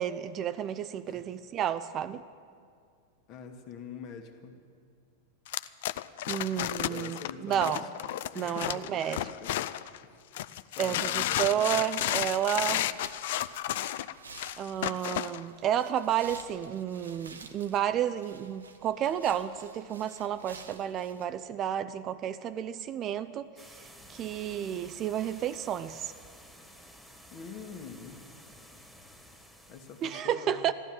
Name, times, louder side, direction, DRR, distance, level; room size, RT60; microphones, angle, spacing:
voice 1, 0.0-2.2 6.3-7.8 8.4-9.2 10.8-12.8 14.6-26.1 30.0-30.7, right 10 dB, 35° right, 13 dB, 0.5 m, -31 dB
voice 2, 3.3-4.6 6.9-7.9 8.3-9.6 10.0-10.2 10.7-11.6 27.3-28.2 29.7-30.6, left 6 dB, 40° left, 5 dB, 1.7 m, -45 dB
sound 1, 5.5-10.0 10.4-15.4, left 13 dB, 60° left, 0.4 m, -32 dB
sound 2, 11.9-21.3, right 4 dB, 80° right, 1.1 m, -52 dB
sound 3, 23.6-30.1, equal, 5° right, 1.9 m, -53 dB
15.0 x 12.0 x 7.6 m, 2.2 s
figure-of-eight pair, 90°, 0 cm